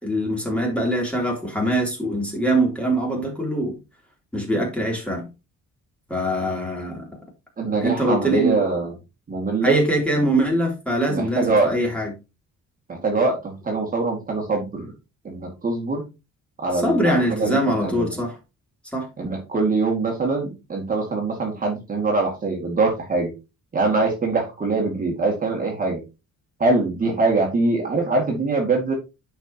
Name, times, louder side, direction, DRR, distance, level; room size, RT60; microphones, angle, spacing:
voice 1, 0.0-3.8 4.3-5.3 6.1-7.1 7.8-8.6 9.6-12.1 16.7-18.4 18.9-19.1, right 1 dB, 5° left, 3.3 m, -23 dB
voice 2, 7.6-8.9 9.3-9.8 10.2-10.3 11.1-11.7 12.9-14.9 15.2-16.1 16.6-18.1 19.2-23.3 23.7-26.0 26.6-28.9, right 3 dB, 30° right, 2.4 m, -23 dB
10.5 x 5.5 x 3.0 m
cardioid pair, 150°, 30 cm